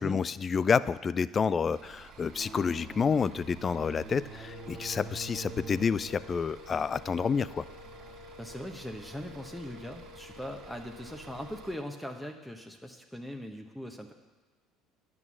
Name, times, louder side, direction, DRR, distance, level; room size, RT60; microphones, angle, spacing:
voice 1, 0.0-7.6, left 6 dB, 35° left, 17 dB, 0.4 m, -29 dB
Bus / Idling, 1.7-11.7, right 7 dB, 60° right, 2.1 m, -52 dB
sound 1, 2.2-10.3, right 4 dB, 35° right, 1.3 m, -48 dB
sound 2, 4.4-12.6, left 6 dB, 60° left, 0.9 m, -51 dB
voice 2, 8.4-14.1, equal, 5° left, 3 dB, 1.1 m, -40 dB
10.5 x 6.2 x 7.4 m, 1.3 s
hypercardioid pair, 65°, 0 cm